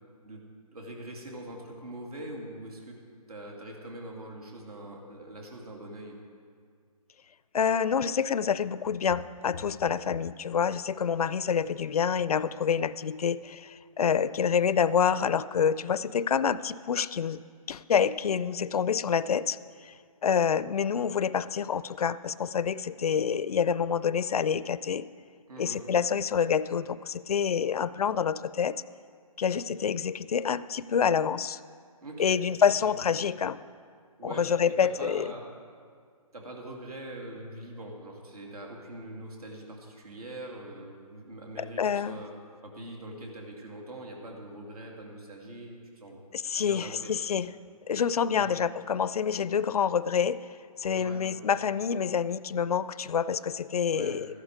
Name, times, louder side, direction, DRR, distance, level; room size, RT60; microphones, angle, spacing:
voice 1, 0.7-3.0 3.3-6.2 25.5-25.8 32.0-32.4 32.6-33.0 34.2-35.5 36.3-42.3 42.6-46.2 46.6-47.1 48.3-48.5 50.9-51.2 53.9-54.2, right 1 dB, 85° right, 0 dB, 2.8 m, -43 dB
voice 2, 7.5-17.4 17.7-19.6 19.8-19.9 20.2-25.1 25.6-28.8 29.4-31.6 32.2-33.6 34.2-35.3 41.6-42.2 46.3-47.5 47.9-50.5 50.8-54.3, left 7 dB, 80° left, 17 dB, 0.5 m, -27 dB
14.0 x 11.5 x 4.9 m, 2.1 s
hypercardioid pair, 155°, 19 cm